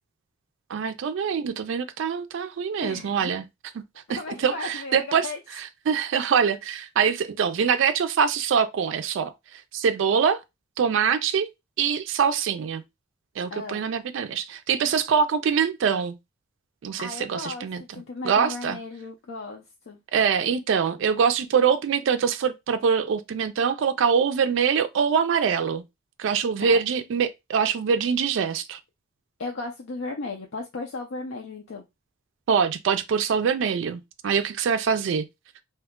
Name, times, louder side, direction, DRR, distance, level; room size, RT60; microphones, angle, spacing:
voice 1, 0.7-3.4 4.1-5.3 5.6-10.4 10.8-11.5 11.8-12.8 13.4-16.2 16.8-17.8 18.2-18.8 20.1-25.8 26.2-28.8 32.5-35.2, right 6 dB, 65° right, 0.3 m, -24 dB
voice 2, 2.8-3.3 4.1-5.4 13.5-13.9 17.0-20.0 26.6-26.8 29.4-31.9, left 3 dB, 85° left, 0.5 m, -35 dB
2.8 x 2.2 x 3.5 m
head